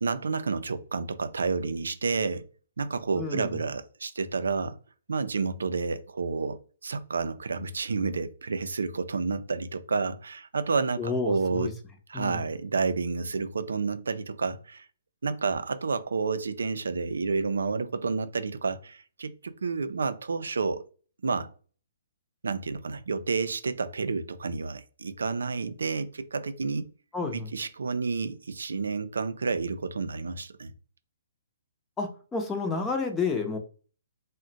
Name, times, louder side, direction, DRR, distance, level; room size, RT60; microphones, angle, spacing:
voice 1, 0.0-2.5 2.8-4.8 5.1-11.7 12.1-14.9 15.2-20.8 21.2-21.5 22.4-26.9 27.3-30.7, right 4 dB, 85° right, 0.4 m, -30 dB
voice 2, 3.2-3.6 11.0-11.7 12.1-12.4 27.1-27.5 32.0-33.6, left 4 dB, 10° left, 0.6 m, -30 dB
2.4 x 2.1 x 3.9 m
hypercardioid pair, 150°, 0 cm